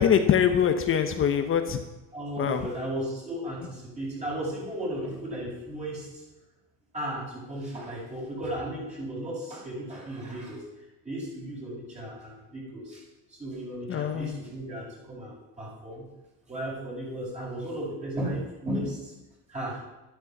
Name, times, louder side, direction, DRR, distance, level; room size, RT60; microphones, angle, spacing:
voice 1, 0.0-1.8 2.4-2.6 13.9-14.4, left 8 dB, 35° left, 7 dB, 1.0 m, -23 dB
voice 2, 2.1-6.2 6.9-10.6 11.0-13.0 13.3-16.0 16.5-19.1 19.5-19.8, right 1 dB, 20° right, -4 dB, 7.3 m, -35 dB
13.0 x 12.0 x 7.2 m, 1.1 s
cardioid pair, 150°, 36 cm